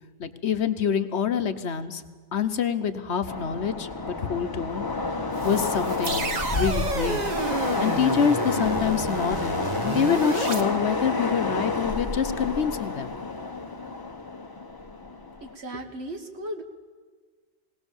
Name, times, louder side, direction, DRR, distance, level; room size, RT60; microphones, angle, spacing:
voice 1, 0.2-2.0 2.3-4.9 5.4-7.2 7.8-13.1, left 7 dB, 70° left, 10 dB, 1.2 m, -26 dB
Train, 3.3-15.5, left 3 dB, 20° left, 0.8 m, -30 dB
sound 1, 5.3-10.6, right 3 dB, 35° right, 1.3 m, -31 dB
voice 2, 15.4-16.6, right 1 dB, 65° right, 5 dB, 1.9 m, -36 dB
19.5 x 18.5 x 7.2 m, 1.5 s
omnidirectional pair, 1.2 m